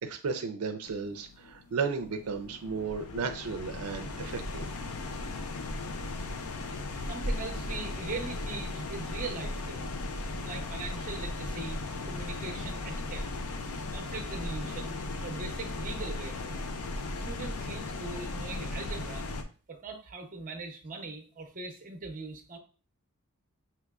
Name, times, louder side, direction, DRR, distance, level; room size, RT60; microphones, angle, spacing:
voice 1, 0.0-4.7, right 5 dB, 80° right, 6 dB, 0.4 m, -34 dB
sound 1, 0.9-19.4, left 2 dB, 80° left, 0.5 m, -37 dB
voice 2, 7.0-9.9 10.4-11.8 12.0-13.3 13.9-16.7 17.2-19.3 19.7-22.6, right 3 dB, 40° right, 4 dB, 0.7 m, -40 dB
5.9 x 2.9 x 2.3 m, 0.37 s
head